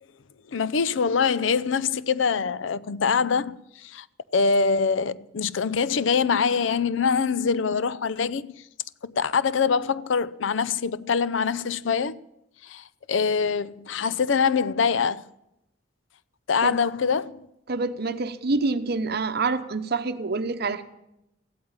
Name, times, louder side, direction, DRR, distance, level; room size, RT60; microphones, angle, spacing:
voice 1, 0.5-4.1 4.3-8.6 9.0-12.2 12.6-15.2 16.5-17.4, left 5 dB, 70° left, 0.5 m, -24 dB
voice 2, 17.7-20.8, right 3 dB, 55° right, 0.9 m, -26 dB
15.5 x 8.6 x 8.8 m
head